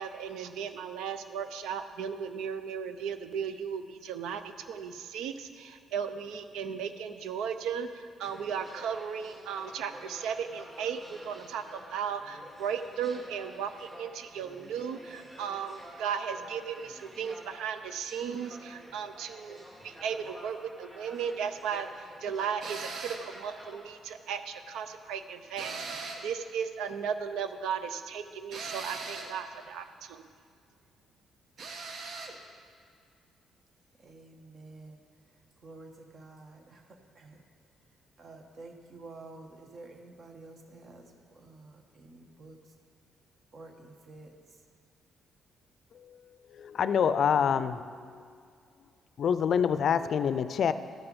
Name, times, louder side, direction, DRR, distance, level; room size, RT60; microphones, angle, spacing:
voice 1, 0.0-30.3, right 7 dB, 90° right, 9 dB, 0.6 m, -36 dB
sound 1, 8.2-23.8, equal, 30° right, 3.0 m, -50 dB
sound 2, 22.6-23.3 25.6-26.3 28.5-29.4 31.6-32.4, right 4 dB, 65° right, 1.1 m, -39 dB
voice 2, 34.0-35.0 35.6-37.4 38.2-42.7 43.5-44.6, right 3 dB, 50° right, 3 dB, 1.4 m, -50 dB
voice 3, 46.5-48.3 49.2-50.7, left 7 dB, 60° left, 13 dB, 0.4 m, -27 dB
13.0 x 5.7 x 5.5 m, 2.2 s
cardioid pair, 90°, 0 cm